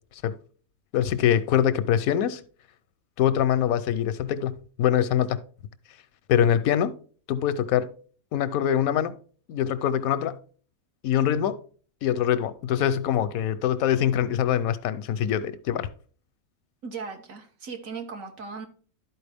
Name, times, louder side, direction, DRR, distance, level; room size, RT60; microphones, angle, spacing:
voice 1, 0.9-2.4 3.2-5.4 6.3-6.9 7.3-7.9 8.3-9.2 9.5-10.4 11.0-11.6 12.0-15.9, left 10 dB, 85° left, 1.0 m, -24 dB
voice 2, 16.8-18.7, right 5 dB, 70° right, 1.5 m, -37 dB
11.5 x 4.5 x 3.4 m
omnidirectional pair, 1.5 m